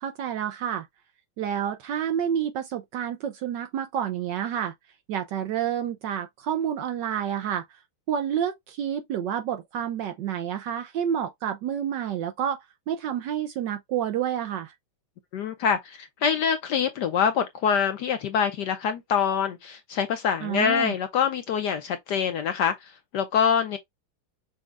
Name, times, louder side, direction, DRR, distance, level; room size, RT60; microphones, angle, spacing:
voice 1, 0.0-0.9 1.4-4.7 5.1-7.6 8.1-14.7 20.4-20.9, right 9 dB, 75° right, 1.1 m, -29 dB
voice 2, 15.3-23.8, left 7 dB, 70° left, 1.0 m, -25 dB
6.3 x 2.3 x 3.3 m
omnidirectional pair, 2.3 m